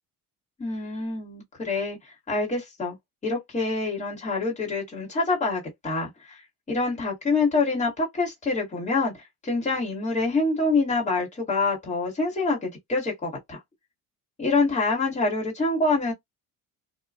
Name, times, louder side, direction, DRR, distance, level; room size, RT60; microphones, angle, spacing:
voice 1, 0.6-3.0 3.2-6.4 6.7-9.1 9.4-13.6 14.4-16.1, left 3 dB, 20° left, 1.8 m, -26 dB
2.8 x 2.4 x 2.4 m
cardioid pair, 165°, 33 cm